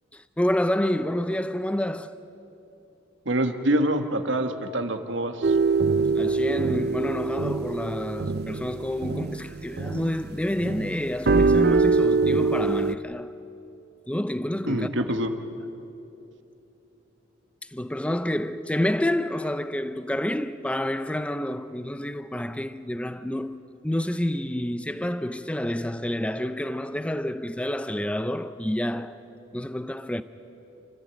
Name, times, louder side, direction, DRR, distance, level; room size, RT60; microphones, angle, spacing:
voice 1, 0.1-2.2 6.2-13.3 14.1-14.9 17.6-29.2 29.5-30.2, left 1 dB, 5° left, 0.5 m, -28 dB
voice 2, 3.2-5.6 14.6-15.3, right 1 dB, 70° right, 1.5 m, -25 dB
sound 1, 5.4-10.3 10.6-12.9, right 4 dB, 55° right, 0.5 m, -23 dB
28.5 x 14.5 x 8.9 m
head